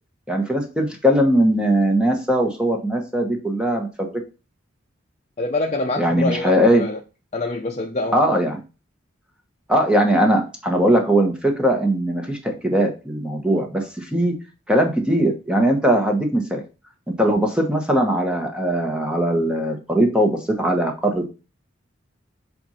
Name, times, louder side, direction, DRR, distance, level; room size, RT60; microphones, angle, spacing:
voice 1, 0.3-4.1 6.0-6.8 8.1-8.6 9.7-14.3 14.7-16.6 17.2-21.3, right 1 dB, 5° right, 1.1 m, -20 dB
voice 2, 5.4-7.0 7.3-8.4, left 2 dB, 35° left, 0.6 m, -26 dB
7.7 x 2.6 x 5.6 m
head